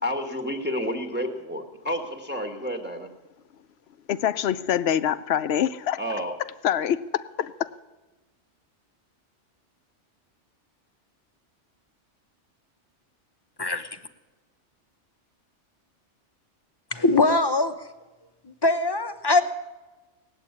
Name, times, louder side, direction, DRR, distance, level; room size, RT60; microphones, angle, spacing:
voice 1, 0.0-3.1 6.0-6.3, equal, 10° right, 1.4 m, -30 dB
voice 2, 4.1-6.0 6.6-7.7, left 10 dB, 65° left, 0.9 m, -25 dB
voice 3, 13.6-13.9 16.9-17.7 18.4-19.4, left 2 dB, 25° left, 0.7 m, -22 dB
18.5 x 8.1 x 9.6 m
omnidirectional pair, 1.2 m